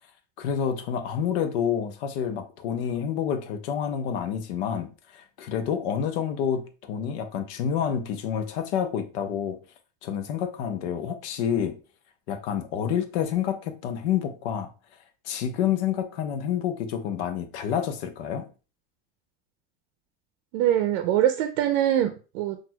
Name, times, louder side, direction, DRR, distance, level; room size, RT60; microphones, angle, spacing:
voice 1, 0.4-9.6 10.0-11.8 12.3-14.7 15.2-18.5, left 8 dB, 90° left, 0.7 m, -28 dB
voice 2, 20.5-22.6, right 11 dB, 85° right, 0.5 m, -23 dB
5.9 x 2.5 x 2.2 m
cardioid pair, 140°, 33 cm